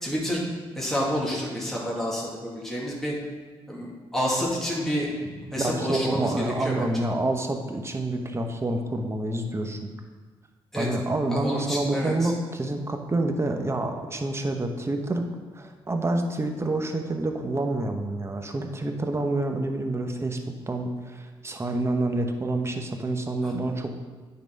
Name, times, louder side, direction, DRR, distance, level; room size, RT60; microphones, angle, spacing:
voice 1, 0.0-0.4 0.8-3.1 3.7-5.1 5.5-6.8 10.7-10.9 11.3-12.3, equal, 5° left, -5 dB, 2.4 m, -29 dB
voice 2, 5.6-9.9 10.8-15.3 15.5-20.4 20.7-24.0, right 2 dB, 25° right, 4 dB, 1.0 m, -28 dB
9.1 x 4.1 x 5.3 m, 1.4 s
cardioid pair, 70°, 10 cm